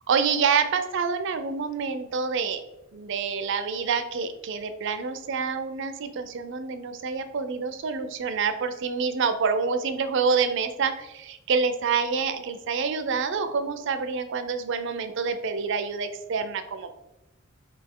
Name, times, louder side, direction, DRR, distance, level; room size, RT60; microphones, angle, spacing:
voice 1, 0.1-2.6 2.9-16.9, right 5 dB, 60° right, 10 dB, 0.4 m, -27 dB
4.2 x 2.7 x 3.6 m, 0.93 s
head